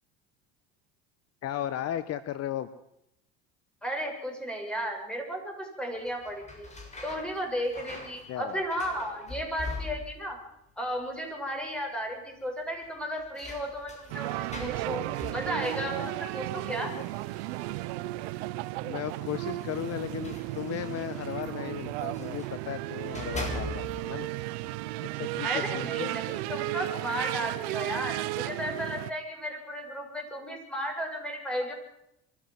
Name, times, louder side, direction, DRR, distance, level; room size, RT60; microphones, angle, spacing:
voice 1, 1.4-2.7 8.3-8.6 18.8-24.3 25.1-26.1, left 11 dB, 50° left, 14 dB, 1.2 m, -35 dB
voice 2, 3.8-6.7 7.0-10.4 10.8-15.1 15.3-16.9 25.4-31.7, equal, 5° left, 2 dB, 7.7 m, -34 dB
sound 1, 6.0-10.4 10.6-11.3 11.6-11.7 12.8-18.2 19.1-22.6 23.0-24.2, left 2 dB, 20° left, 7.4 m, -43 dB
sound 2, 14.1-29.1, right 18 dB, 80° right, 0.9 m, -34 dB
24.0 x 14.5 x 7.8 m, 0.80 s
supercardioid pair, 90°, 31 cm